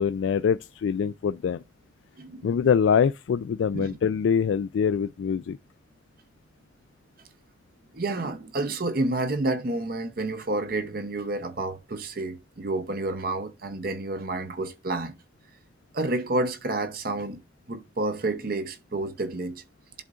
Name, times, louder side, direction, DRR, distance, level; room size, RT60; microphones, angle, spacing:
voice 1, 0.0-1.6 2.4-5.6, left 7 dB, 85° left, 0.3 m, -24 dB
voice 2, 2.2-2.5 3.7-4.0 7.9-15.2 15.9-17.4 17.7-19.6, right 2 dB, 50° right, 0.7 m, -29 dB
11.0 x 3.7 x 2.4 m
head